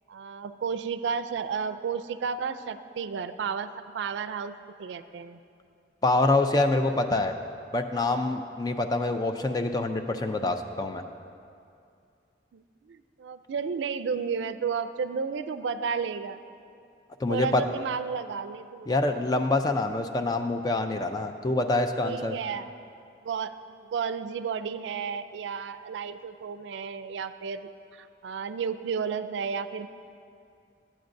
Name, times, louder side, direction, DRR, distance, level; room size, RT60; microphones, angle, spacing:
voice 1, 0.1-5.4 12.5-16.4 17.3-19.0 22.0-22.7 23.2-29.9, right 6 dB, 80° right, 10 dB, 0.3 m, -32 dB
voice 2, 6.0-7.3 7.7-11.0 17.2-17.6 18.9-22.4, left 2 dB, 20° left, 6 dB, 0.4 m, -26 dB
14.5 x 8.7 x 2.6 m, 2.4 s
head